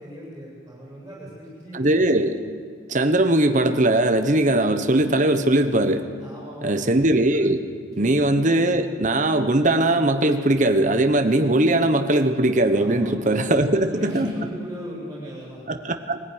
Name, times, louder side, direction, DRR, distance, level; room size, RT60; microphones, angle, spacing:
voice 1, 0.0-1.8 6.2-7.0 8.0-8.1 12.7-15.6, equal, 10° right, -7 dB, 7.3 m, -37 dB
voice 2, 1.7-2.4 2.9-6.0 6.6-7.6 7.9-14.3 15.7-16.2, right 1 dB, 40° right, 7 dB, 1.1 m, -20 dB
21.5 x 15.0 x 9.8 m, 2.1 s
head